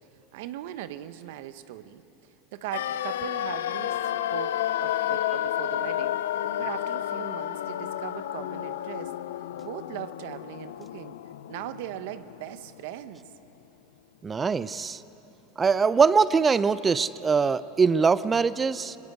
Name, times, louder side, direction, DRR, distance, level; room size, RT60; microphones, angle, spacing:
voice 1, 0.3-2.0 2.5-6.2 6.6-9.1 9.6-11.2 11.5-13.3, right 13 dB, 65° right, 12 dB, 1.0 m, -39 dB
sound 1, 2.7-12.7 12.9-13.0, left 12 dB, 80° left, 0.6 m, -31 dB
voice 2, 14.2-15.0 15.6-19.0, right 5 dB, 25° right, 16 dB, 0.6 m, -22 dB
23.0 x 21.0 x 9.4 m, 3.0 s
hypercardioid pair, 95°, 0 cm